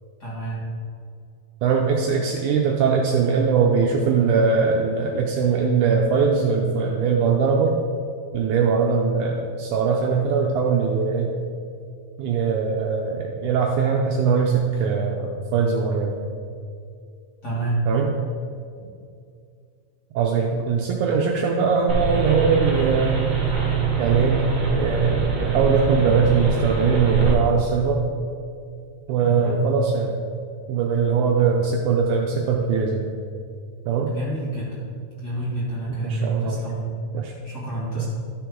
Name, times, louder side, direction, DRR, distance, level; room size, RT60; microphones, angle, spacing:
voice 1, 0.2-0.6 17.4-17.8 29.2-29.6 34.1-34.8 35.2-36.9 37.4-38.0, right 2 dB, 35° left, -8 dB, 2.3 m, -28 dB
voice 2, 1.6-7.8 8.3-11.3 12.2-16.2 17.9-18.1 20.2-23.3 24.0-24.4 24.7-28.0 29.1-30.1 30.7-33.1 33.9-34.1 36.0-36.6 37.1-37.3 38.0-38.1, right 5 dB, 90° right, 0 dB, 1.7 m, -21 dB
sound 1, 21.9-27.3, right 6 dB, 40° right, 1.6 m, -23 dB
12.5 x 5.9 x 3.7 m, 2.3 s
omnidirectional pair, 4.2 m